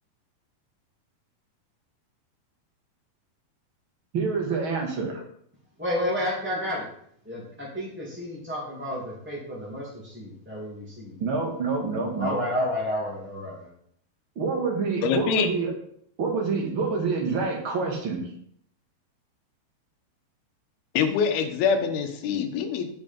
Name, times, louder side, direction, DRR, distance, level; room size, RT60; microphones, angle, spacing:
voice 1, 4.1-5.2 11.2-12.4 14.4-15.7 16.2-18.3, right 4 dB, 40° right, 1 dB, 2.0 m, -27 dB
voice 2, 5.8-6.9 7.2-11.2 12.2-13.7, left 1 dB, 5° right, -5 dB, 1.5 m, -31 dB
voice 3, 15.0-15.5 20.9-22.9, left 6 dB, 70° left, 5 dB, 2.9 m, -24 dB
10.5 x 5.3 x 5.3 m, 0.66 s
omnidirectional pair, 4.9 m